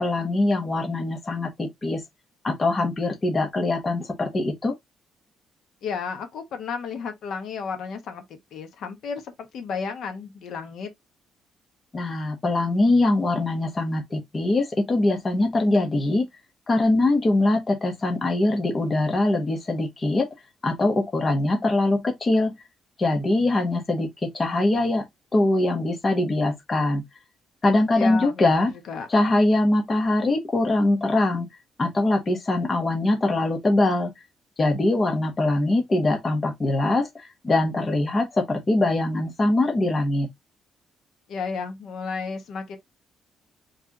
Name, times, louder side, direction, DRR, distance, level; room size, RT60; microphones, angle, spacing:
voice 1, 0.0-2.0 2.4-4.7 11.9-16.2 16.7-20.3 20.6-22.5 23.0-25.0 25.3-27.0 27.6-28.7 29.1-31.5 31.8-34.1 34.6-40.3, left 2 dB, 25° left, 1.3 m, -22 dB
voice 2, 5.8-10.9 27.9-29.1 41.3-42.8, left 5 dB, 60° left, 1.3 m, -33 dB
4.8 x 3.4 x 3.0 m
cardioid pair, 150°, 0 cm